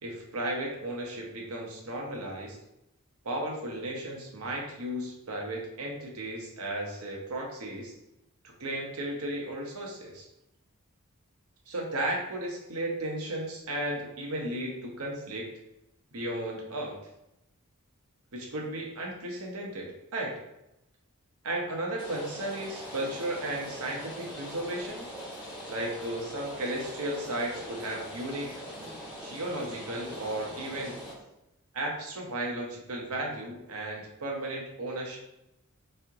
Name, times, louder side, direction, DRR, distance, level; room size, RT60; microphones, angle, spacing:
voice 1, 0.0-2.6 3.2-7.9 8.6-10.3 11.7-15.6 16.1-16.9 18.3-20.4 21.4-25.0 25.7-28.5 29.2-31.0 31.7-35.2, right 1 dB, 70° right, 0 dB, 0.8 m, -34 dB
Rain, 22.0-31.1, equal, 5° right, 1.4 m, -42 dB
3.2 x 2.8 x 3.5 m, 0.89 s
head